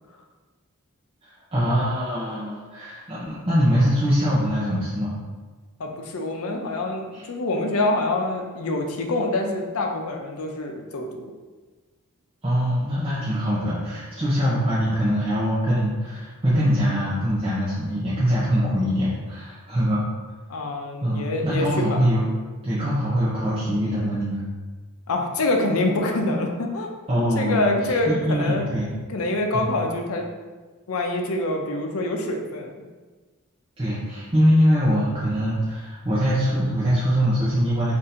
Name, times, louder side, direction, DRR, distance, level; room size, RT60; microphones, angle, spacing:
voice 1, 1.2-5.2 7.1-7.2 12.4-20.0 21.0-22.3 22.6-24.5 27.1-27.7 28.1-28.9 29.5-29.7 33.8-37.9, equal, 25° right, -10 dB, 0.8 m, -23 dB
voice 2, 5.8-11.3 20.5-22.0 25.1-26.9 27.3-28.7 29.1-30.3 30.9-32.8, left 2 dB, 85° left, 3 dB, 0.6 m, -25 dB
3.7 x 2.7 x 4.2 m, 1.3 s
head